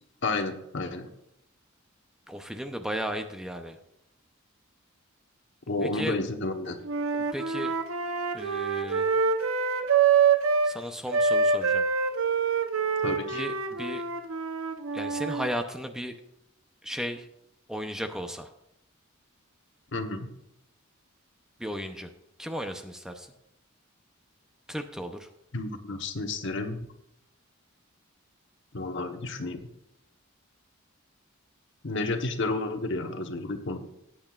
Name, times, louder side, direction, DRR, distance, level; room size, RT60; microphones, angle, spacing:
voice 1, 0.2-1.1 5.7-6.8 13.0-13.4 19.9-20.3 25.5-26.8 28.7-29.7 31.8-33.8, left 2 dB, 60° left, 5 dB, 1.1 m, -31 dB
voice 2, 2.3-3.8 5.8-6.2 7.1-7.7 8.3-9.1 10.6-11.8 13.3-14.0 14.9-16.2 16.8-17.3 17.7-18.5 21.6-22.1 22.4-23.3 24.7-25.3, equal, 5° right, 6 dB, 0.6 m, -35 dB
Wind instrument woodwind instrument, 6.8-10.7 11.1-15.5, right 5 dB, 85° right, 0.8 m, -26 dB
17.5 x 8.9 x 2.4 m, 0.81 s
head